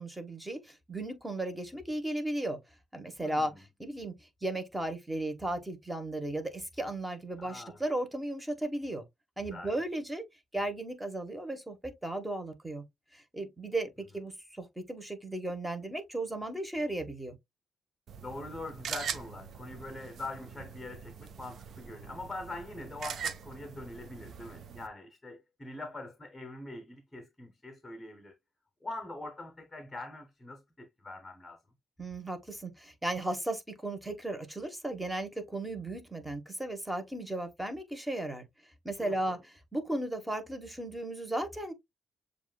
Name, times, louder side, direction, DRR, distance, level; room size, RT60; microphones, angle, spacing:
voice 1, 0.0-2.6 2.9-4.1 4.4-9.0 9.4-10.2 10.5-12.8 13.1-13.9 14.1-17.3 32.0-38.4 38.8-41.7, right 1 dB, 10° right, 1.3 m, -35 dB
voice 2, 3.2-3.6 7.4-7.8 9.5-9.8 18.2-28.3 28.8-31.6 39.0-39.4, left 2 dB, 15° left, 1.0 m, -43 dB
sound 1, 18.1-24.9, right 7 dB, 60° right, 0.5 m, -42 dB
7.1 x 2.5 x 2.3 m
cardioid pair, 90°, 0 cm